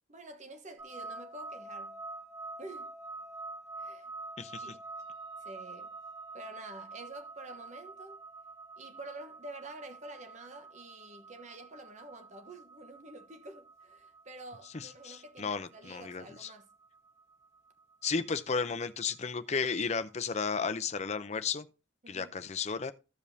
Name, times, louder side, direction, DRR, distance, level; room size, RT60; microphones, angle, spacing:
voice 1, 0.1-2.0 2.6-2.9 3.8-4.1 4.6-4.8 5.4-5.9 6.3-8.2 8.8-16.7 22.0-22.4, right 2 dB, 40° right, 1.1 m, -48 dB
sound 1, 0.8-19.9, right 3 dB, 15° right, 1.1 m, -47 dB
voice 2, 14.7-16.5 18.0-21.7 22.1-22.9, left 5 dB, 35° left, 0.6 m, -34 dB
15.5 x 5.2 x 2.7 m
head